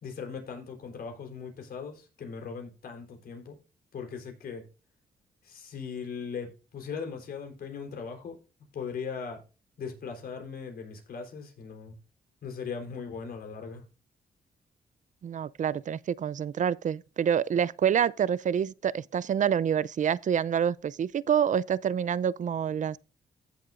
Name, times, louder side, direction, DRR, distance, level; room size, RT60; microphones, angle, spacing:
voice 1, 0.0-3.6 3.9-4.6 5.4-8.4 8.7-9.4 9.8-12.0 12.4-13.8, left 5 dB, 75° left, 3.7 m, -39 dB
voice 2, 15.2-23.0, right 8 dB, 55° right, 0.5 m, -27 dB
15.5 x 7.5 x 2.5 m
cardioid pair, 60°, 16 cm